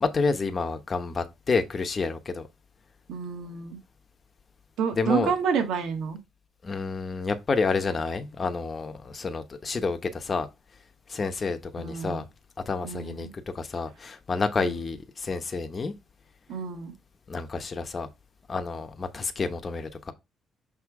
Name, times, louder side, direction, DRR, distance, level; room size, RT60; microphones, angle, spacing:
voice 1, 0.0-2.5 5.0-5.3 6.6-10.5 11.1-12.3 12.7-15.9 17.3-18.1 18.5-20.1, left 4 dB, 35° left, 1.0 m, -29 dB
voice 2, 3.1-3.8 4.8-6.2 11.8-12.2 12.8-13.3 14.6-14.8 16.5-16.9, right 6 dB, 80° right, 1.5 m, -29 dB
6.4 x 3.1 x 4.7 m
cardioid pair, 90°, 0 cm